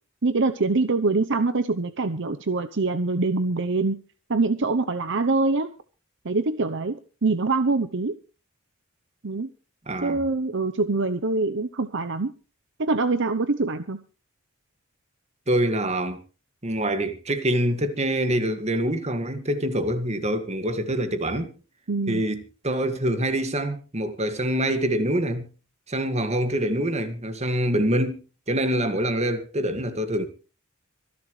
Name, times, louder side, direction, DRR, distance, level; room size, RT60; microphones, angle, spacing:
voice 1, 0.2-4.0 4.3-5.7 6.2-8.2 9.2-9.5 10.0-12.3 12.8-14.0 21.9-22.2, right 3 dB, 60° right, 0.9 m, -24 dB
voice 2, 9.9-10.2 15.5-16.2 16.6-21.5 22.1-25.5 25.9-28.2 28.5-30.3, right 1 dB, 35° right, 2.1 m, -25 dB
25.5 x 11.5 x 3.3 m
head